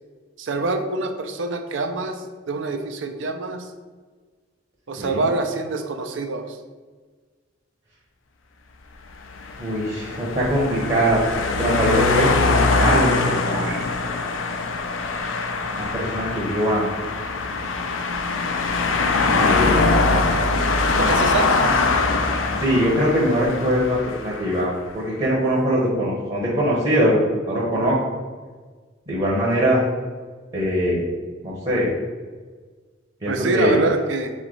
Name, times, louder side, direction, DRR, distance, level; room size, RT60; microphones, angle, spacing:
voice 1, 0.4-3.7 4.9-6.6 21.0-21.5 33.3-34.3, right 3 dB, 70° right, 6 dB, 0.5 m, -25 dB
sound 1, 9.2-24.6, left 3 dB, 85° left, 0.5 m, -22 dB
voice 2, 9.6-13.8 15.7-16.9 19.3-20.2 22.6-27.2 27.5-28.0 29.1-29.8 30.5-31.0 31.4-31.9 33.2-33.7, equal, 30° right, -5 dB, 0.9 m, -22 dB
4.0 x 3.1 x 3.9 m, 1.4 s
head